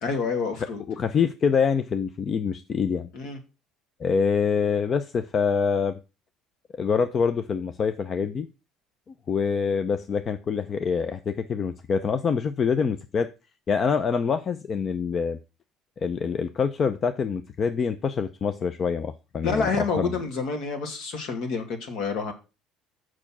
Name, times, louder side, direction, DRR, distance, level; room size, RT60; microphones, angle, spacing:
voice 1, 0.0-0.8 3.1-3.4 19.4-22.3, left 4 dB, 65° left, 2.4 m, -28 dB
voice 2, 1.0-3.1 4.0-6.0 6.8-8.5 9.3-13.3 13.7-15.4 16.0-19.7 20.0-20.1, left 6 dB, 35° left, 0.6 m, -25 dB
6.8 x 6.1 x 6.1 m
cardioid pair, 120°, 0 cm